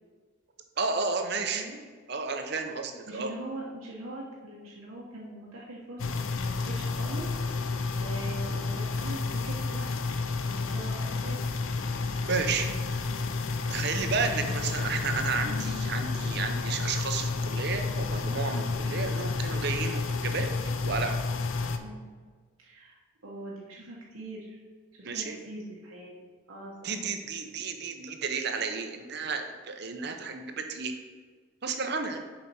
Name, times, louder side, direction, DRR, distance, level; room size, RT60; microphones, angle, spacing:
voice 1, 0.8-1.7 2.1-3.3 12.3-12.7 13.7-20.5 20.8-21.2 25.0-25.4 26.8-30.9 31.6-32.2, right 4 dB, 50° right, 5 dB, 0.7 m, -32 dB
voice 2, 1.3-1.8 3.1-7.3 8.0-9.9 10.4-11.4 14.0-14.2 21.7-22.0 22.6-24.6 25.0-26.9, right 1 dB, 85° right, -4 dB, 1.1 m, -42 dB
sound 1, 6.0-21.8, left 3 dB, 75° left, 0.5 m, -31 dB
7.0 x 5.0 x 4.2 m, 1.5 s
head